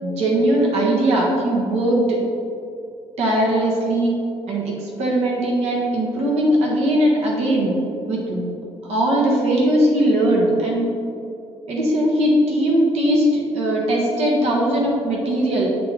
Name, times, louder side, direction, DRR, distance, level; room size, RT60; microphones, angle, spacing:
voice 1, 0.0-2.2 3.2-4.1 4.5-7.7 8.1-8.5 8.8-10.9 11.7-15.7, right 1 dB, 70° right, -3 dB, 1.4 m, -19 dB
7.9 x 5.7 x 3.7 m, 2.7 s
cardioid pair, 160°, 11 cm